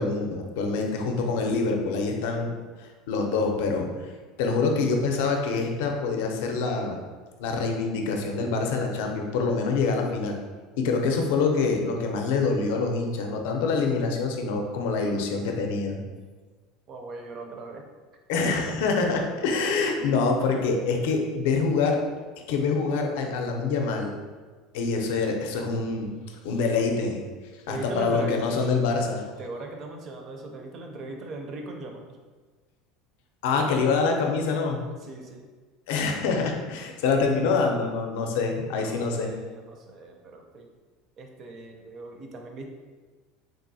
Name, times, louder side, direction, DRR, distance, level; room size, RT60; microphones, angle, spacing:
voice 1, 0.0-2.5 2.8-4.1 4.4-7.0 7.4-10.4 10.8-16.0 18.3-22.0 22.5-24.2 24.7-26.1 26.4-27.2 27.7-29.2 33.4-34.8 35.9-39.3, left 4 dB, 70° left, 2 dB, 0.5 m, -25 dB
voice 2, 16.9-17.9 18.4-18.7 20.0-20.2 27.7-28.8 29.4-32.2 35.0-35.5 38.8-40.7 41.2-42.7, right 2 dB, 30° right, 3 dB, 0.4 m, -39 dB
3.7 x 2.6 x 2.6 m, 1.4 s
cardioid pair, 170°, 0 cm